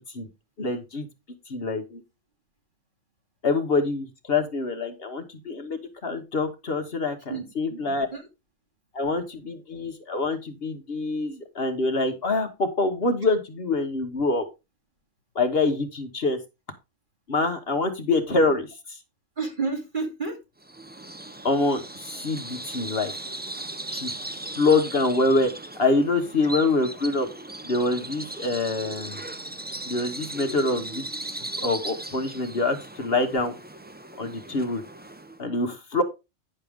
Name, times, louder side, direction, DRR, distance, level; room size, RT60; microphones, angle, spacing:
voice 1, 0.6-1.1 1.5-2.0 3.4-7.2 7.6-8.1 8.9-14.4 15.3-16.4 17.3-19.0 21.4-23.1 23.9-24.1 24.4-25.5 25.7-27.3 27.6-29.2 29.9-31.0 31.6-33.5 34.2-34.8 35.4-36.0, left 3 dB, 55° left, 1.3 m, -25 dB
voice 2, 7.3-8.3 19.4-20.4, right 4 dB, 40° right, 2.8 m, -31 dB
Bird vocalization bird call bird song, 20.6-35.4, right 2 dB, 15° right, 0.3 m, -38 dB
10.0 x 6.6 x 3.6 m
omnidirectional pair, 1.3 m